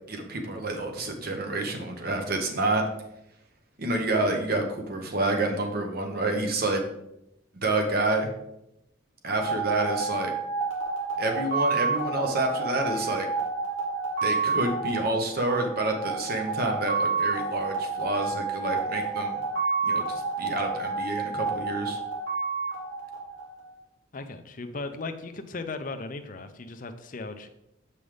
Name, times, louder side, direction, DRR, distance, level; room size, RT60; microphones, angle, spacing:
voice 1, 0.1-2.8 3.8-6.8 7.5-8.3 9.2-10.3 11.2-13.3 14.2-19.4 19.8-22.0, right 2 dB, 50° right, 4 dB, 1.0 m, -28 dB
sound 1, 9.3-23.8, right 4 dB, 85° right, 2.6 m, -30 dB
voice 2, 24.1-27.5, left 3 dB, 40° left, 8 dB, 0.6 m, -37 dB
7.5 x 5.4 x 3.4 m, 0.84 s
head